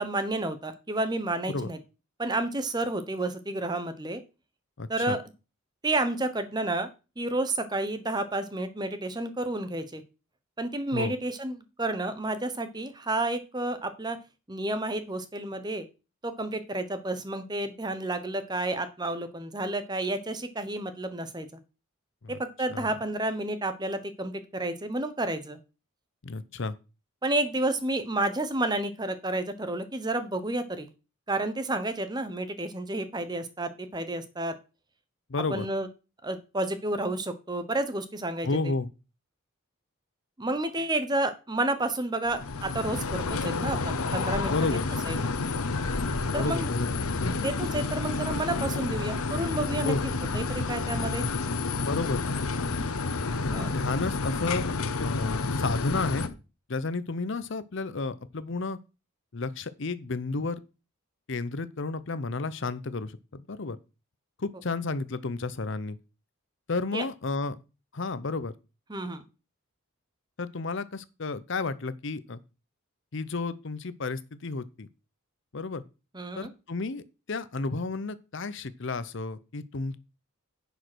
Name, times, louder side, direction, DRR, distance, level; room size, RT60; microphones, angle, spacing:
voice 1, 0.0-1.8 2.2-4.2 4.9-5.2 5.8-6.9 7.2-10.0 10.6-14.2 14.5-15.8 16.2-21.5 22.3-25.6 27.2-30.9 31.3-34.5 35.5-35.9 36.2-38.7 40.4-44.7 45.1-45.2 46.3-46.7 47.3-51.3 53.5-53.7 66.9-67.0 68.9-69.2 76.1-76.5, right 2 dB, 20° right, 1.0 m, -30 dB
voice 2, 4.8-5.2 10.9-11.1 22.2-22.4 22.7-22.9 26.2-26.7 35.3-35.7 38.4-38.9 44.5-44.9 46.3-47.0 49.8-50.0 51.8-52.2 53.6-54.7 55.0-56.4 56.7-58.8 59.3-60.6 61.3-63.8 64.4-66.0 66.7-67.6 67.9-68.5 70.4-72.4 73.1-74.9 75.5-75.8 76.4-77.0 77.3-80.0, left 3 dB, 55° left, 0.7 m, -31 dB
sound 1, 42.3-56.3, left 3 dB, 90° left, 1.0 m, -30 dB
10.5 x 5.2 x 6.2 m
head